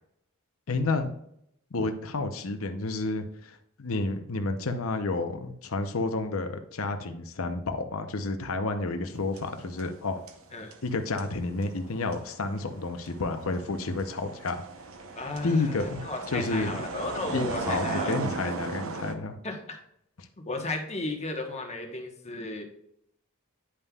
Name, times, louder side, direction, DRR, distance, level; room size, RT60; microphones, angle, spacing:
voice 1, 0.7-1.1 1.7-10.2 10.8-14.6 15.4-16.7 17.3-19.4 20.2-20.3, left 3 dB, 75° left, 7 dB, 0.8 m, -30 dB
sound 1, 9.1-10.0 10.3-19.1, right 3 dB, 70° right, 0.8 m, -37 dB
voice 2, 15.1-18.2 19.4-19.8 20.5-22.6, left 2 dB, 30° left, 3 dB, 1.2 m, -34 dB
9.8 x 5.4 x 2.3 m, 0.74 s
head